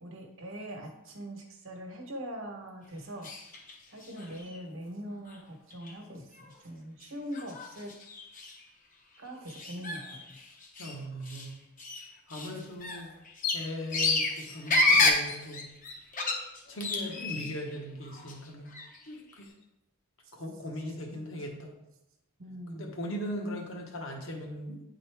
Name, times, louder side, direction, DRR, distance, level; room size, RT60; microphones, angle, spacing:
voice 1, 0.0-3.3 3.9-7.9 9.2-10.4 22.4-23.0, equal, 60° right, 2 dB, 1.1 m, -42 dB
sound 1, 3.2-3.7 4.0-4.6 5.3-5.4 5.7-5.9 6.4-6.5 7.0-7.1 7.3-8.6 9.5-11.0 11.3-11.5 11.8-17.7 18.0-19.0, left 2 dB, 35° left, 0.8 m, -30 dB
voice 2, 10.8-11.6 12.3-13.1 13.5-15.7 16.7-18.7 19.1-19.5 20.3-21.7 22.7-24.8, equal, 60° left, 1 dB, 1.2 m, -39 dB
9.2 x 3.9 x 3.4 m, 0.89 s
head